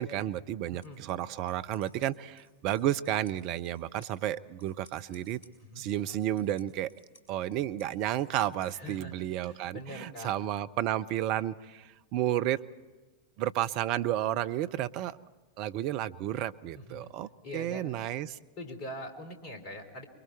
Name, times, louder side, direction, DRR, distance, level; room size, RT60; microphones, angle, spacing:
voice 1, 0.0-5.4 5.8-6.9 7.3-12.6 13.4-15.2 15.6-18.4, right 12 dB, 45° right, 13 dB, 0.6 m, -32 dB
sound 1, 0.6-8.8, left 1 dB, 55° left, 5.3 m, -62 dB
voice 2, 5.6-6.0 8.7-10.3 16.7-17.1 17.4-17.9 18.6-20.0, left 1 dB, 40° left, 7 dB, 3.3 m, -43 dB
25.5 x 23.0 x 4.6 m, 1.3 s
figure-of-eight pair, 90°, 0 cm